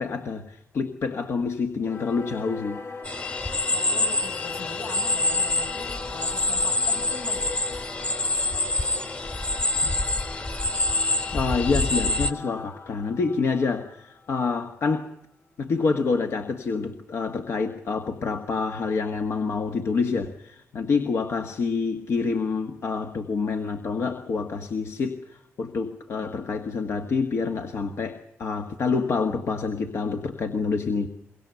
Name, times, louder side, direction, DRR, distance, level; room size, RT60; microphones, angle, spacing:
voice 1, 0.0-2.8 9.8-9.9 10.9-15.1 15.6-31.1, left 4 dB, 65° left, 5 dB, 1.6 m, -27 dB
Singing / Musical instrument, 1.8-14.7, left 4 dB, 50° left, 1.5 m, -39 dB
sound 1, 3.0-12.3, left 2 dB, 25° left, 1.5 m, -26 dB
voice 2, 3.7-7.5, left 3 dB, 85° left, 2 dB, 7.9 m, -41 dB
24.0 x 23.0 x 6.9 m, 0.78 s
cardioid pair, 80°, 5 cm